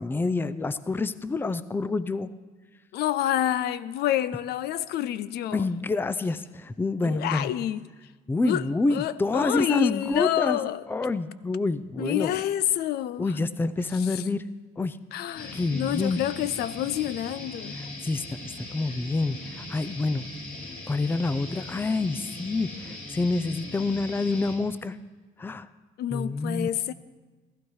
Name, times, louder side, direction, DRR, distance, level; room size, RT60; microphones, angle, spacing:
voice 1, 0.0-2.3 5.5-7.5 8.3-10.6 10.9-12.3 13.2-14.4 14.8-15.0 15.5-16.2 18.0-18.2 18.6-20.3 20.9-25.0 25.4-25.7 26.1-26.7, left 3 dB, 10° left, 0.5 m, -27 dB
voice 2, 2.9-5.7 7.0-7.9 8.4-10.8 12.0-13.4 13.9-14.2 15.1-17.8 26.0-26.9, left 12 dB, 75° left, 0.5 m, -28 dB
sound 1, 15.4-24.6, left 2 dB, 55° left, 4.4 m, -40 dB
15.0 x 14.5 x 4.7 m
cardioid pair, 110°, 17 cm